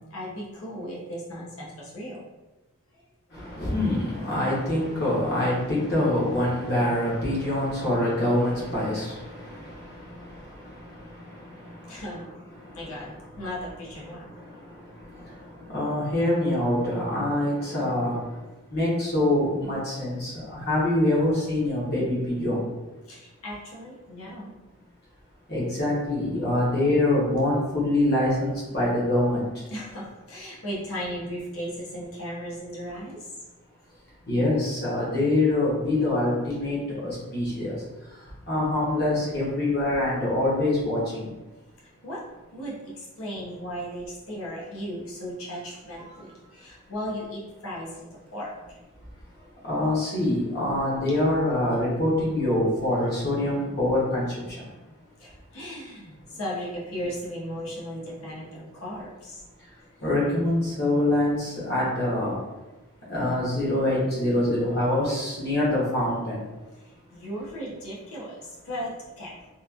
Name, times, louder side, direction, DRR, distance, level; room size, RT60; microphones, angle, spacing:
voice 1, 0.0-2.2 11.9-12.2 12.7-13.1 13.4-14.3 23.1-24.5 29.7-33.2 42.0-42.2 42.5-48.8 55.2-59.4 67.1-68.9 69.2-69.3, equal, 75° left, -5 dB, 0.8 m, -36 dB
voice 2, 3.3-10.2 11.0-11.1 15.7-18.2 18.7-22.6 25.5-29.5 34.3-37.8 38.5-41.3 49.6-54.2 60.0-62.4 63.1-66.4, left 1 dB, 45° left, -6 dB, 1.0 m, -25 dB
2.9 x 2.4 x 2.4 m, 1.1 s
head